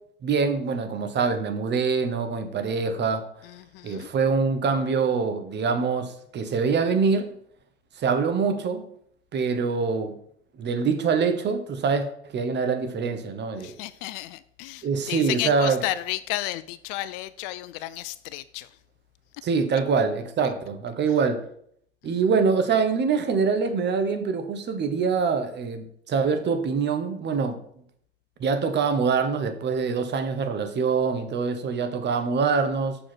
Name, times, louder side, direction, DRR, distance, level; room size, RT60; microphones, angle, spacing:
voice 1, 0.2-3.5 3.8-7.3 7.9-8.9 9.3-10.1 10.5-13.7 14.8-15.8 19.4-21.4 22.0-27.8 28.4-33.0, right 5 dB, 30° right, 9 dB, 1.1 m, -24 dB
voice 2, 3.4-4.1 13.6-18.7 22.0-22.2, left 16 dB, 55° left, 16 dB, 0.5 m, -33 dB
6.2 x 5.0 x 6.0 m, 0.67 s
hypercardioid pair, 95°, 33 cm